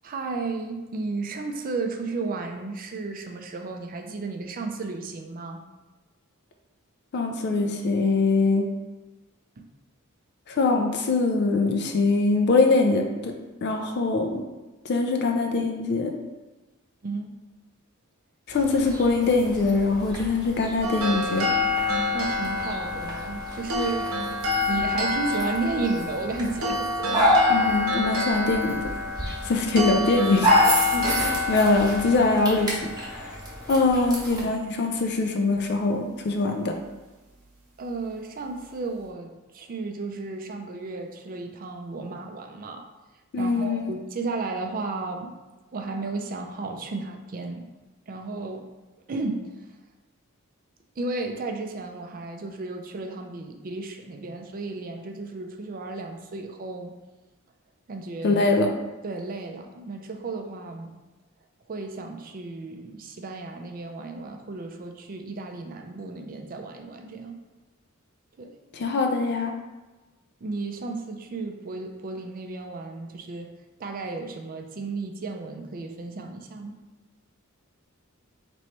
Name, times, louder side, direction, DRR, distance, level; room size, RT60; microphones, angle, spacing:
voice 1, 0.0-5.6 9.6-9.7 17.0-17.4 22.1-24.2 24.7-27.4 30.9-31.5 37.8-42.9 43.4-45.3 45.7-47.7 48.1-48.7 49.1-49.7 51.0-57.0 57.9-58.4 59.0-61.0 61.7-67.4 68.4-68.5 70.4-73.5 73.8-76.8, right 3 dB, 40° right, 5 dB, 0.4 m, -33 dB
voice 2, 7.1-8.7 10.5-13.3 13.6-14.5 14.9-16.2 18.5-21.5 27.5-28.8 29.3-30.5 31.5-33.3 33.7-36.7 43.3-43.9 58.2-58.7 68.7-69.5, left 3 dB, 55° left, 4 dB, 0.4 m, -23 dB
sound 1, 18.5-34.4, equal, 20° right, 1.0 m, -29 dB
sound 2, 20.8-34.0, left 3 dB, 85° right, 0.8 m, -28 dB
3.0 x 2.9 x 4.4 m, 1.2 s
head